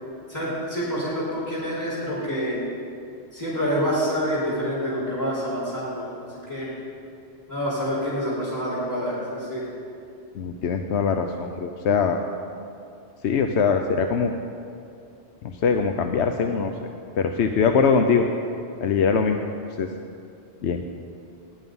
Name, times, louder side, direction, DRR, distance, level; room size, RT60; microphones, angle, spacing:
voice 1, 0.3-2.6 3.3-6.7 7.5-9.6, equal, 15° left, -12 dB, 5.1 m, -27 dB
voice 2, 10.3-12.2 13.2-14.3 15.4-16.7 17.2-18.3 18.8-19.4 19.8-19.9 20.6-20.8, left 5 dB, 85° left, 5 dB, 1.0 m, -22 dB
19.5 x 11.5 x 5.5 m, 2.6 s
omnidirectional pair, 1.1 m